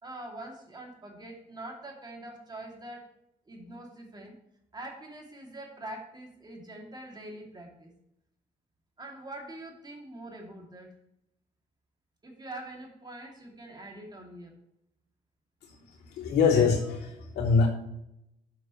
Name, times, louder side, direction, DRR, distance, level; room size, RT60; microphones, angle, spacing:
voice 1, 0.0-3.1 3.5-4.3 4.7-7.9 9.0-10.9 12.2-14.5, right 1 dB, 25° right, 0 dB, 2.8 m, -44 dB
voice 2, 16.0-17.7, left 5 dB, 90° left, -3 dB, 3.2 m, -24 dB
12.0 x 7.5 x 3.2 m, 0.80 s
cardioid pair, 110°, 17 cm